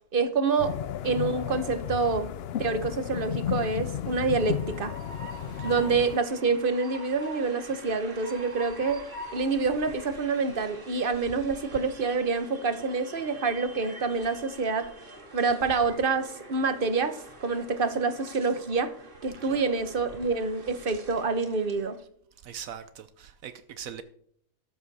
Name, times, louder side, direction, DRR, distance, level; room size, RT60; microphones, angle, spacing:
voice 1, 0.1-0.7 1.0-2.3 2.6-4.9 5.6-9.0 9.3-14.9 15.3-18.9 19.2-22.0, right 4 dB, 45° right, 1.1 m, -27 dB
sound 1, 0.6-6.2, left 10 dB, 65° left, 0.6 m, -33 dB
Train, 4.1-21.9, right 1 dB, 60° right, 2.5 m, -46 dB
voice 2, 22.4-24.0, right 8 dB, 80° right, 1.1 m, -41 dB
13.0 x 7.4 x 4.1 m
omnidirectional pair, 1.4 m